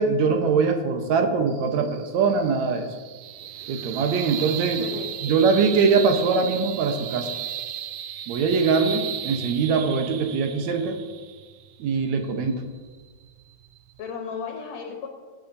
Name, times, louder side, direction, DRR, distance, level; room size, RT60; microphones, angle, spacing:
voice 1, 0.0-2.9 3.7-4.9 5.2-7.3 8.3-11.0 11.8-12.6, right 5 dB, 70° right, 5 dB, 2.2 m, -22 dB
sound 1, 1.5-14.1, right 11 dB, 90° right, 1.4 m, -36 dB
voice 2, 4.8-5.4 14.0-15.1, left 6 dB, 70° left, 1 dB, 2.1 m, -35 dB
19.0 x 8.6 x 2.7 m, 1.5 s
omnidirectional pair, 3.4 m